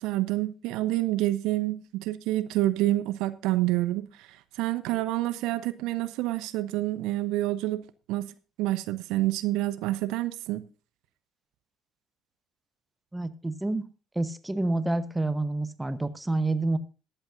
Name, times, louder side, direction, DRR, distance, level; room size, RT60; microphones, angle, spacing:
voice 1, 0.0-8.3 8.6-10.6, right 16 dB, 60° right, 0.5 m, -28 dB
voice 2, 13.1-13.8 14.1-16.8, right 2 dB, 10° right, 1.0 m, -28 dB
21.5 x 8.0 x 2.5 m
figure-of-eight pair, 50°, 0 cm